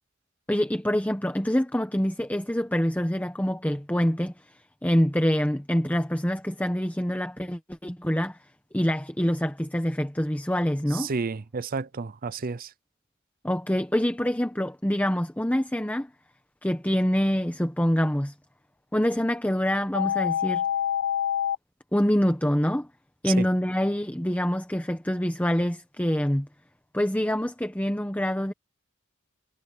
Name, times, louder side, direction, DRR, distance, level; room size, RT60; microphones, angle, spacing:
voice 1, 0.5-8.4 8.7-11.1 13.4-16.1 16.6-18.3 18.9-20.7 21.9-22.9 23.2-26.5 26.9-28.5, equal, 10° left, 1.1 m, -25 dB
voice 2, 10.9-12.7 23.2-23.5, right 4 dB, 45° right, 0.6 m, -31 dB
sound 1, 19.9-21.6, left 9 dB, 85° left, 0.4 m, -26 dB
head